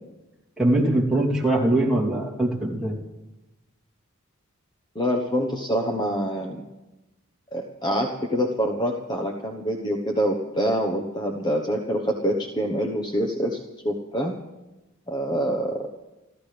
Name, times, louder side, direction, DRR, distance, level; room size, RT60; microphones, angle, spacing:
voice 1, 0.6-2.9, right 1 dB, 5° right, -6 dB, 3.0 m, -22 dB
voice 2, 4.9-6.6 7.5-13.6 13.8-14.3 15.1-15.9, equal, 20° left, 2 dB, 1.1 m, -26 dB
29.5 x 13.5 x 3.4 m, 1.1 s
head